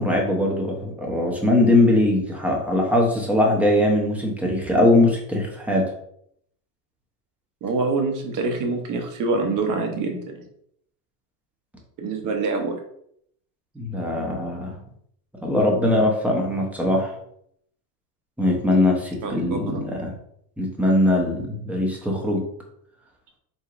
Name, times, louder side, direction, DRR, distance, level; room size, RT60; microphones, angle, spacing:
voice 1, 0.0-5.8 13.8-14.8 15.4-17.1 18.4-20.1 20.6-22.4, left 1 dB, 5° right, -1 dB, 0.6 m, -21 dB
voice 2, 7.6-10.4 12.0-12.8 19.2-19.9, right 3 dB, 40° right, 3 dB, 0.8 m, -25 dB
3.9 x 2.9 x 2.5 m, 0.70 s
supercardioid pair, 120°, 50 cm